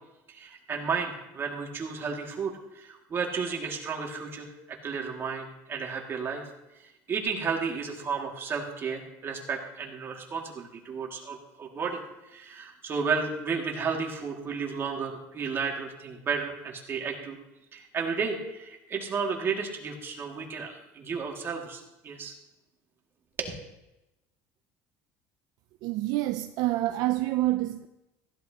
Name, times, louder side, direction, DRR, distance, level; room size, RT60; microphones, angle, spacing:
voice 1, 0.3-6.4 6.7-12.0 12.3-17.4 17.7-22.3 23.4-23.5, right 5 dB, 35° right, 2.3 m, -33 dB
voice 2, 25.8-27.9, right 16 dB, 70° right, 0.5 m, -27 dB
15.5 x 11.5 x 2.9 m
cardioid pair, 125°, 7 cm